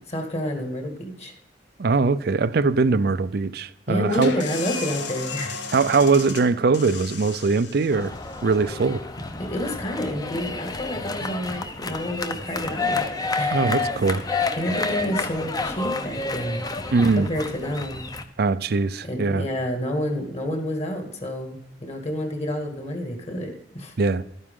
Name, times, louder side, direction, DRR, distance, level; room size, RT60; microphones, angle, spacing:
voice 1, 0.1-1.3 3.9-5.6 9.4-13.1 13.4-13.8 14.6-16.6 17.1-18.1 19.0-23.9, equal, 35° left, 2.0 m, -29 dB
voice 2, 1.8-4.3 5.7-8.1 8.4-9.0 13.5-14.2 16.9-17.3 18.4-19.4 24.0-24.2, right 4 dB, 60° right, 0.5 m, -21 dB
sound 1, 4.1-9.5, left 5 dB, 75° left, 1.4 m, -36 dB
sound 2, 7.9-18.2, left 3 dB, 20° left, 0.7 m, -29 dB
12.5 x 9.6 x 3.7 m
head